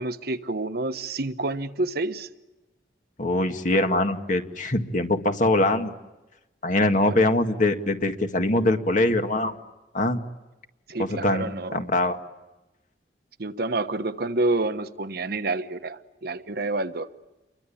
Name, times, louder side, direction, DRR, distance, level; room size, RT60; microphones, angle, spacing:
voice 1, 0.0-2.3 7.0-7.2 10.9-11.9 13.4-17.1, right 2 dB, 60° right, 1.2 m, -28 dB
voice 2, 3.2-5.9 6.6-9.5 9.9-10.2 11.0-12.2, left 2 dB, 45° left, 2.0 m, -23 dB
29.5 x 23.5 x 8.6 m
head